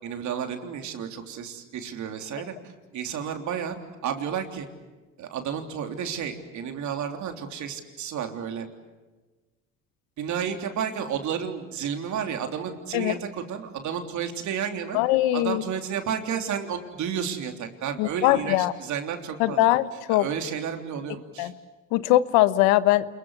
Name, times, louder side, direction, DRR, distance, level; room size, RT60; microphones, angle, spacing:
voice 1, 0.0-3.8 4.0-4.7 5.2-8.7 10.2-15.0 15.3-19.7 20.1-21.5, right 8 dB, 60° right, 5 dB, 3.5 m, -32 dB
voice 2, 14.9-15.6 18.0-18.7 19.4-20.3 21.4-21.5 21.9-23.1, left 16 dB, 85° left, 15 dB, 1.2 m, -21 dB
28.5 x 22.0 x 8.3 m, 1.2 s
supercardioid pair, 95°, 33 cm